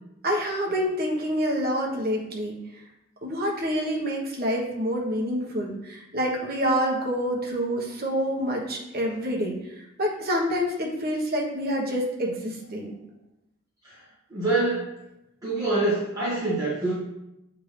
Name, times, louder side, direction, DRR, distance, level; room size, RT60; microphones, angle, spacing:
voice 1, 0.2-2.5 3.2-9.7 10.0-12.9, equal, 50° right, -2 dB, 1.3 m, -27 dB
voice 2, 14.3-14.9 15.4-16.9, right 2 dB, 20° right, -11 dB, 1.7 m, -25 dB
7.7 x 3.7 x 3.3 m, 0.87 s
head